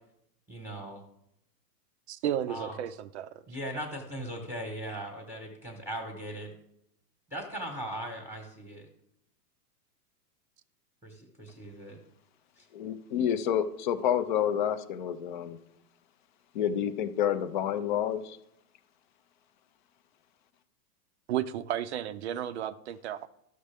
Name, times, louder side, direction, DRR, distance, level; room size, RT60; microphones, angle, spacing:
voice 1, 0.5-1.0 2.5-2.7 3.5-6.5 7.3-8.9 11.0-12.0 12.6-12.7, right 1 dB, 5° right, 1 dB, 1.0 m, -39 dB
voice 2, 2.1-3.3 21.3-23.3, right 11 dB, 45° right, 12 dB, 0.4 m, -33 dB
voice 3, 12.7-15.6 16.5-18.4, left 9 dB, 35° left, 12 dB, 0.4 m, -29 dB
12.5 x 6.4 x 3.4 m, 0.77 s
hypercardioid pair, 140°, 48 cm